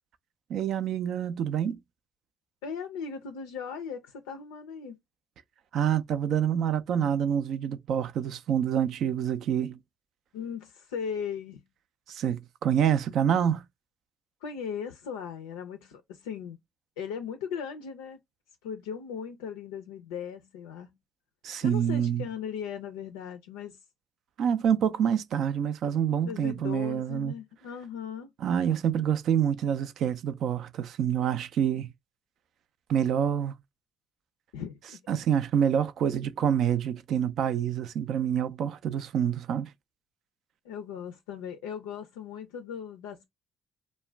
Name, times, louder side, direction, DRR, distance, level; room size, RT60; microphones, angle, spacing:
voice 1, 0.5-1.8 5.7-9.8 12.1-13.6 21.4-22.3 24.4-27.3 28.4-31.9 32.9-33.5 35.1-39.7, right 9 dB, 65° right, 0.3 m, -27 dB
voice 2, 2.6-5.0 10.3-11.6 14.4-16.6 17.0-18.2 18.6-21.0 21.6-23.8 26.2-28.3 34.5-35.0 40.6-43.2, left 7 dB, 85° left, 0.3 m, -38 dB
2.3 x 2.1 x 3.2 m
hypercardioid pair, 55°, 0 cm